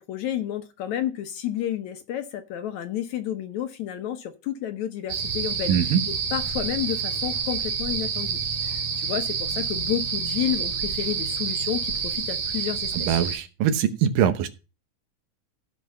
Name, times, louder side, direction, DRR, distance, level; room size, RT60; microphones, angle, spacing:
voice 1, 0.0-5.9 6.3-13.1, left 11 dB, 70° left, 2.0 m, -31 dB
sound 1, 5.1-13.4, right 6 dB, 60° right, 2.7 m, -28 dB
voice 2, 5.7-6.0 12.9-14.5, right 9 dB, 80° right, 2.7 m, -22 dB
15.0 x 5.3 x 5.5 m
omnidirectional pair, 3.9 m